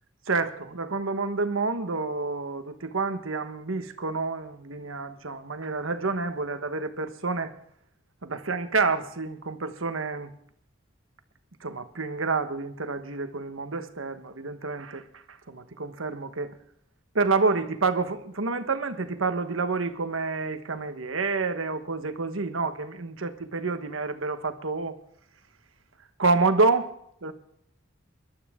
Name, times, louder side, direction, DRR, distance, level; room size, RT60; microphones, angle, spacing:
voice 1, 0.3-7.5 8.2-10.3 11.6-15.0 15.5-16.5 17.1-25.0 26.2-26.9 27.2-27.3, right 3 dB, 90° right, 1.3 m, -28 dB
20.5 x 12.0 x 3.7 m
head